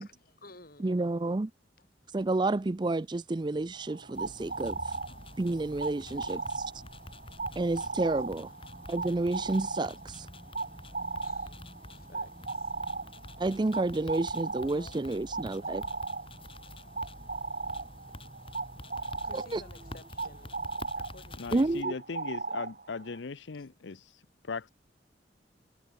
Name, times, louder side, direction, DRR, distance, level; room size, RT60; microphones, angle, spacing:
voice 1, 0.0-1.5 1.8-1.9 4.0-5.3 6.0-6.9 8.1-8.8 9.8-9.9 11.2-11.6 11.9-12.8 14.6-16.0 16.8-17.3 19.1-21.7 23.5-23.7, left 2 dB, 50° left, 5.2 m, -56 dB
voice 2, 0.8-1.5 2.1-4.7 5.4-6.4 7.6-8.5 8.9-9.9 13.4-15.8 19.5-19.6 21.5-21.9, right 2 dB, 25° right, 0.4 m, -30 dB
sound 1, 2.0-20.1, equal, 10° left, 3.1 m, -58 dB
sound 2, 3.7-23.2, right 4 dB, 45° right, 2.6 m, -38 dB
sound 3, 4.1-21.8, left 1 dB, 30° left, 2.9 m, -48 dB
voice 3, 21.4-24.7, left 4 dB, 75° left, 0.7 m, -39 dB
head